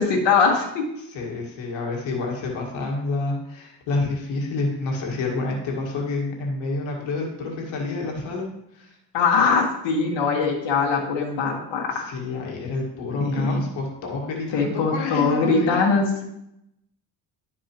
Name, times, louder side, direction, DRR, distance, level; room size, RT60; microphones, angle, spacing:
voice 1, 0.0-0.8 9.1-12.1 13.2-13.7 14.5-16.2, left 4 dB, 65° left, -2 dB, 1.6 m, -21 dB
voice 2, 1.0-8.5 8.7-9.0 11.9-15.7, left 3 dB, 85° left, -1 dB, 1.7 m, -28 dB
11.5 x 4.6 x 2.9 m, 0.80 s
cardioid pair, 85°, 46 cm